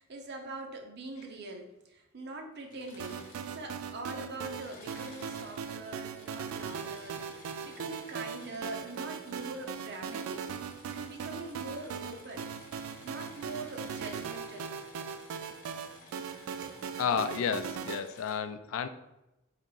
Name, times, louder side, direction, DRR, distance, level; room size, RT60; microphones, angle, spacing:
voice 1, 0.0-7.3 7.6-10.5 10.9-12.5 13.0-14.7 16.6-16.8, right 2 dB, 55° right, 3 dB, 0.6 m, -43 dB
Engine / Mechanisms, 2.6-3.9 4.2-18.4, left 2 dB, 45° left, 0.8 m, -55 dB
sound 1, 3.0-18.0, right 7 dB, 85° right, 0.3 m, -39 dB
voice 2, 17.0-18.9, left 7 dB, 70° left, 10 dB, 0.3 m, -31 dB
3.5 x 2.7 x 3.8 m, 0.94 s
head